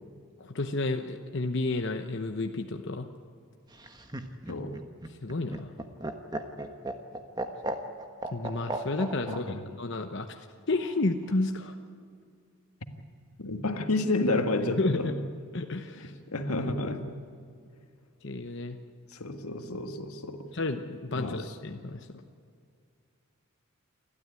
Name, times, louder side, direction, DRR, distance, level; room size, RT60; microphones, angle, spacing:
voice 1, 0.4-3.1 5.1-5.7 8.3-10.4 10.7-11.7 14.8-15.2 15.5-16.2 18.2-18.8 20.5-22.2, left 2 dB, 55° left, 5 dB, 0.9 m, -31 dB
Laughter, 3.7-9.4 10.7-11.3, right 2 dB, 20° right, 1.2 m, -36 dB
voice 2, 4.5-4.8 9.3-9.6 13.4-15.2 16.0-17.1 19.1-20.5 21.1-21.5, left 2 dB, 90° left, 6 dB, 1.8 m, -30 dB
29.0 x 12.5 x 9.7 m, 2.3 s
head